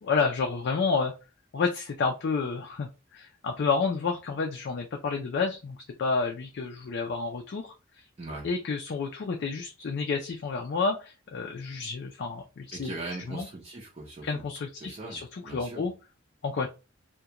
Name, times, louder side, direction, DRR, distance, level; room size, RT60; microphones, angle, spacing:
voice 1, 0.0-1.1 1.5-8.1 8.4-12.9 13.3-13.5 14.2-15.9 16.4-16.7, left 4 dB, 55° left, 2 dB, 0.4 m, -30 dB
voice 2, 12.7-14.4 14.8-15.2 15.4-15.9, right 2 dB, 30° right, -4 dB, 0.6 m, -39 dB
2.4 x 2.2 x 2.8 m, 0.29 s
head